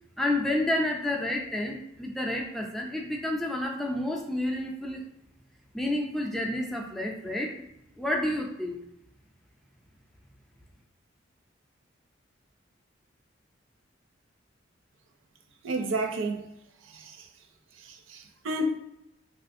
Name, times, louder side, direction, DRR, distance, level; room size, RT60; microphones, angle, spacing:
voice 1, 0.2-5.0 5.7-7.6 8.0-8.8, left 1 dB, ahead, 0.3 m, -30 dB
voice 2, 15.6-16.5 16.8-17.3 17.7-18.8, right 1 dB, 90° right, 0.5 m, -31 dB
3.4 x 2.5 x 2.5 m
head